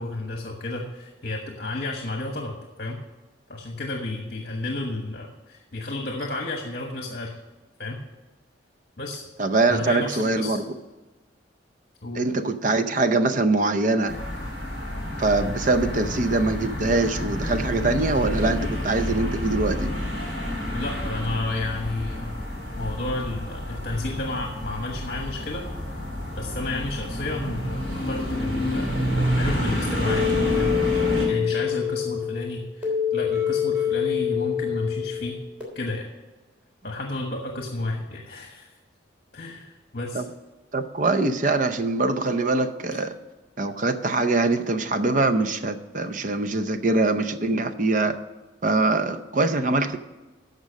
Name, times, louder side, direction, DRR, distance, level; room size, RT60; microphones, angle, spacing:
voice 1, 0.0-3.0 3.5-7.3 7.8-8.0 9.0-9.2 9.7-10.6 12.0-12.2 20.7-22.3 22.8-25.6 26.4-28.9 29.3-30.8 31.2-35.4 35.7-36.1 36.8-38.7 39.3-40.2, left 2 dB, 50° left, 2 dB, 1.2 m, -31 dB
voice 2, 9.4-10.6 12.1-14.2 15.2-19.9 40.1-40.3 40.7-43.1 43.6-48.2 48.6-50.0, right 2 dB, 40° right, 10 dB, 0.6 m, -23 dB
sound 1, 14.1-31.3, equal, 60° right, 3.7 m, -29 dB
sound 2, 30.1-35.6, left 9 dB, 5° right, 3.3 m, -26 dB
13.5 x 5.3 x 6.4 m, 1.2 s
head